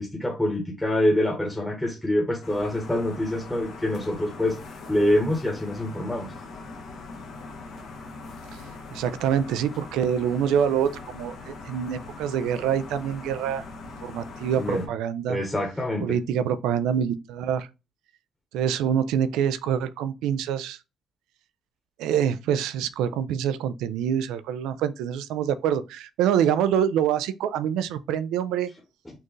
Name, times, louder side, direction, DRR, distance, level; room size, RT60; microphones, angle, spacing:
voice 1, 0.0-6.3 14.6-14.9 15.3-16.2, left 1 dB, 10° left, 1.0 m, -26 dB
sound 1, 2.4-14.9, left 3 dB, 70° left, 0.9 m, -41 dB
voice 2, 8.9-13.6 14.0-15.4 16.0-17.7 18.5-20.8 22.0-28.7, right 9 dB, 85° right, 0.3 m, -25 dB
4.3 x 2.5 x 3.1 m
supercardioid pair, 75°, 0 cm